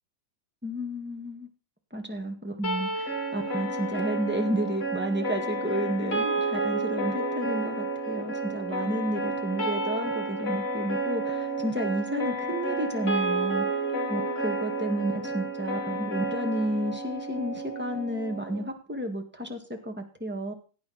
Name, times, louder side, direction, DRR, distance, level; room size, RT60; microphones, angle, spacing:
voice 1, 0.6-1.5 1.9-13.7 14.1-20.5, right 1 dB, 5° right, 4 dB, 1.9 m, -31 dB
sound 1, 2.6-18.7, right 2 dB, 30° left, 2.3 m, -31 dB
17.0 x 8.7 x 4.3 m, 0.38 s
omnidirectional pair, 2.1 m